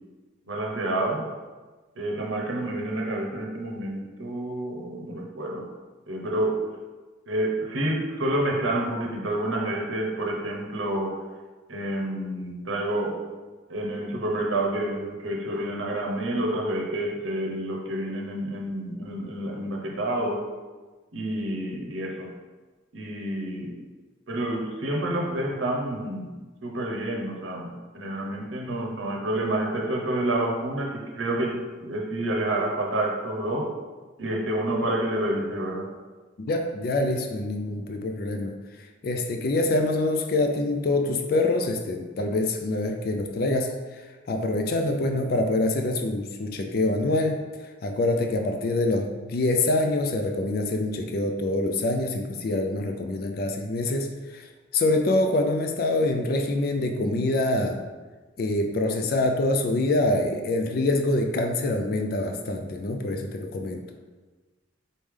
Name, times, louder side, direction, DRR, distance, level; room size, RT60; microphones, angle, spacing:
voice 1, 0.5-1.3 2.0-5.7 6.1-6.7 7.3-11.2 11.7-13.2 13.7-20.5 21.1-22.3 22.9-23.7 24.3-26.3 26.6-33.7 34.2-35.9, right 1 dB, 85° right, 0 dB, 0.8 m, -28 dB
voice 2, 36.5-38.5 39.0-43.7 44.3-47.4 47.8-54.4 54.7-57.8 58.4-63.8, left 2 dB, 50° left, 4 dB, 0.4 m, -25 dB
4.0 x 3.2 x 3.6 m, 1.3 s
head